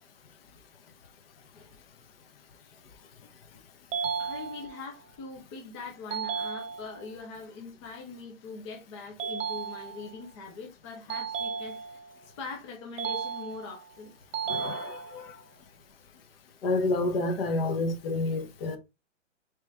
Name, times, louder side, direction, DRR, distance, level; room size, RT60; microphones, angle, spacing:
sound 1, 3.9-4.9 6.1-7.1 9.2-10.2 11.1-12.2 13.0-13.9 14.3-15.3, right 6 dB, 75° right, 0.9 m, -34 dB
voice 1, 4.2-11.8 12.2-14.1, left 4 dB, 25° left, 0.5 m, -42 dB
voice 2, 14.5-15.3 16.6-18.8, left 2 dB, 50° left, 0.9 m, -29 dB
3.1 x 3.0 x 3.3 m
hypercardioid pair, 150°, 38 cm